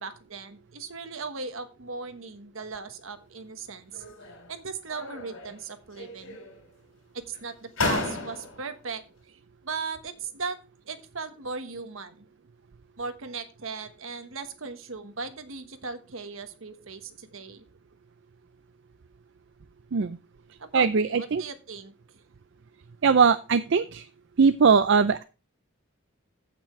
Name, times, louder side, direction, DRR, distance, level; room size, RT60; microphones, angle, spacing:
voice 1, 0.0-4.0 4.5-6.4 7.1-10.6 10.9-12.3 13.0-17.6 20.6-21.9, right 4 dB, 75° right, 9 dB, 1.3 m, -38 dB
sound 1, 3.9-4.5 4.9-5.6 5.9-6.7 7.3-7.4 7.8-8.7, left 3 dB, 75° left, 3.6 m, -33 dB
voice 2, 20.7-21.4 23.0-24.1 24.4-25.2, right 5 dB, 60° right, 12 dB, 0.4 m, -20 dB
15.0 x 6.0 x 3.2 m, 0.33 s
head